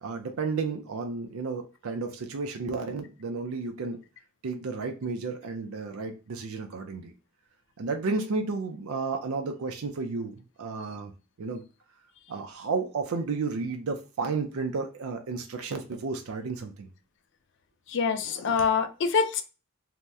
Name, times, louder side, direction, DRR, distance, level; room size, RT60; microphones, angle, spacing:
voice 1, 0.0-4.0 4.4-7.1 7.8-11.1 11.4-11.6 12.3-16.9, right 4 dB, 85° right, 0.4 m, -32 dB
voice 2, 17.9-19.4, left 5 dB, 55° left, 0.4 m, -25 dB
2.7 x 2.0 x 3.4 m
head